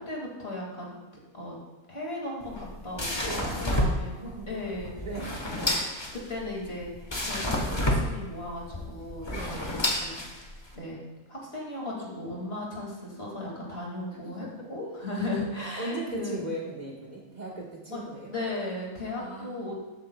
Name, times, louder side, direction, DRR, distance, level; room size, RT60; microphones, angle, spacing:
voice 1, 0.1-0.9 1.3-1.6 1.9-3.3 3.6-4.2 4.5-5.0 5.9-9.6 10.0-10.2 10.7-11.0 11.3-16.4 17.9-19.7, left 2 dB, 50° left, -3 dB, 2.4 m, -36 dB
sound 1, 2.4-10.7, left 1 dB, 20° left, 1.1 m, -30 dB
voice 2, 3.3-3.6 4.2-4.5 5.0-5.3 9.2-9.8 14.4-14.7 15.8-18.3 19.2-19.7, right 2 dB, 35° right, -3 dB, 1.5 m, -38 dB
12.5 x 8.7 x 2.2 m, 1.2 s
omnidirectional pair, 1.3 m